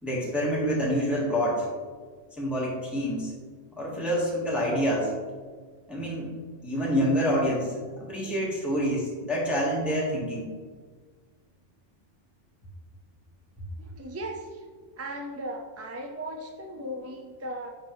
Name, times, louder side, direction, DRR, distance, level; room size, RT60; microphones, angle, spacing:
voice 1, 0.0-1.7 2.4-3.3 3.7-5.1 5.9-6.3 6.6-10.5, equal, ahead, -5 dB, 1.4 m, -27 dB
voice 2, 13.8-14.6 15.0-17.7, right 1 dB, 20° right, 2 dB, 0.4 m, -37 dB
10.0 x 4.6 x 3.1 m, 1.5 s
omnidirectional pair, 1.3 m